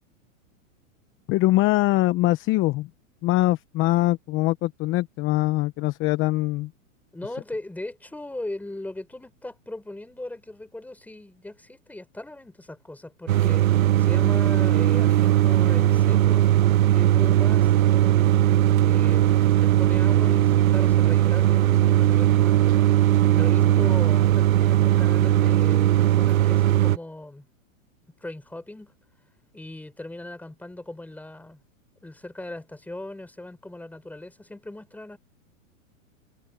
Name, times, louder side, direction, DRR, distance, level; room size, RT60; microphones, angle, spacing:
voice 1, 1.3-2.9 3.2-6.7, left 18 dB, 30° left, 1.0 m, -22 dB
voice 2, 7.1-16.5 16.9-18.5 18.8-23.1 23.3-27.5 28.2-28.9 29.5-31.6 32.0-35.2, left 1 dB, 5° left, 5.8 m, -39 dB
sound 1, 13.3-27.0, right 13 dB, 80° right, 0.9 m, -19 dB
sound 2, 14.5-22.2, left 13 dB, 70° left, 6.5 m, -48 dB
hypercardioid pair, 135°, 41 cm